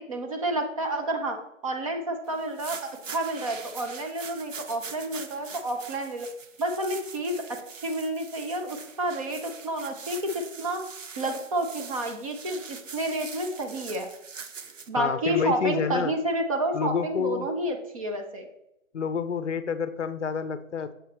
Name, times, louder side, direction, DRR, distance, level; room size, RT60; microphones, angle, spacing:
voice 1, 0.0-6.3 6.6-10.8 11.2-14.1 14.9-18.5, right 1 dB, 25° right, 3 dB, 0.7 m, -30 dB
sound 1, 2.4-14.9, right 6 dB, 65° right, 0.8 m, -43 dB
voice 2, 15.0-16.1 16.7-17.5 18.9-20.9, left 6 dB, 60° left, 13 dB, 0.6 m, -28 dB
7.2 x 5.4 x 3.2 m, 0.83 s
figure-of-eight pair, 135°, 41 cm